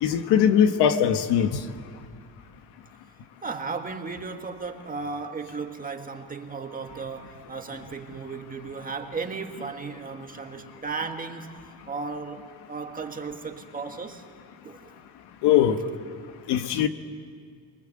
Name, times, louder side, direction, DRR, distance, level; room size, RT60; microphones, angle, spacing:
voice 1, 0.0-1.5 15.4-15.8 16.5-16.9, left 9 dB, 80° left, 1.6 m, -20 dB
voice 2, 3.4-14.2 14.6-14.9, right 4 dB, 20° right, 1.7 m, -35 dB
29.0 x 23.5 x 7.8 m
cardioid pair, 145°, 39 cm